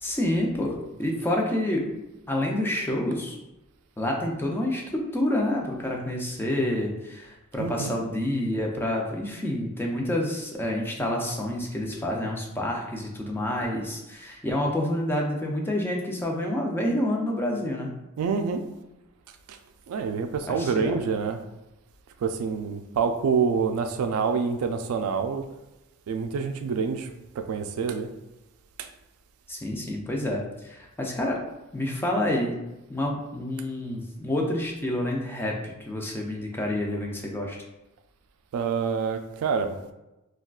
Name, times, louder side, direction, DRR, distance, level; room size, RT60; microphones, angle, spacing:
voice 1, 0.0-1.8 2.3-3.4 4.0-17.9 20.5-20.9 29.5-31.4 31.7-32.6 32.9-37.6, left 1 dB, 10° left, -1 dB, 0.4 m, -28 dB
voice 2, 7.6-8.0 18.2-18.6 19.5-19.6 19.9-21.4 22.2-25.5 26.1-27.1 27.4-28.1 28.8-28.9 38.5-39.8, right 5 dB, 85° right, 8 dB, 0.3 m, -27 dB
3.6 x 2.3 x 2.3 m, 0.96 s
head